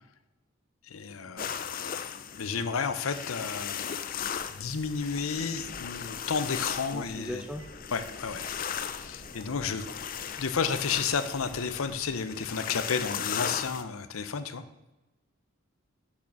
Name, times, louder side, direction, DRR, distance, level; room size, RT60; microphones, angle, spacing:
voice 1, 0.8-4.0 4.6-7.4 7.9-8.6 9.0-9.8 10.4-14.6, left 5 dB, 90° left, 11 dB, 0.7 m, -32 dB
sound 1, 1.4-13.8, left 8 dB, 40° left, 0.4 m, -37 dB
sound 2, 4.0-12.2, equal, 25° right, 1.3 m, -52 dB
Telephone, 6.7-6.9 7.5-7.7 8.3-8.5 9.2-10.1 10.6-10.8, right 7 dB, 70° right, 1.5 m, -55 dB
voice 2, 6.9-7.6, equal, 5° right, 6 dB, 0.7 m, -38 dB
6.5 x 6.0 x 5.9 m, 1.0 s
head